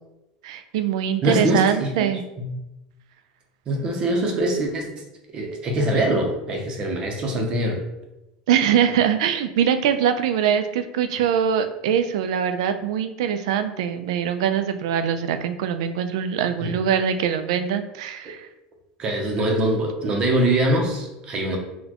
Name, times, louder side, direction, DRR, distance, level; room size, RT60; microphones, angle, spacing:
voice 1, 0.4-2.2 8.5-18.5, right 8 dB, 85° right, 9 dB, 0.3 m, -23 dB
voice 2, 1.2-2.1 2.4-2.6 3.7-5.0 5.3-7.8 16.6-16.8 19.0-21.6, right 1 dB, 30° right, 2 dB, 0.6 m, -23 dB
4.1 x 2.2 x 2.9 m, 0.95 s
supercardioid pair, 150°, 3 cm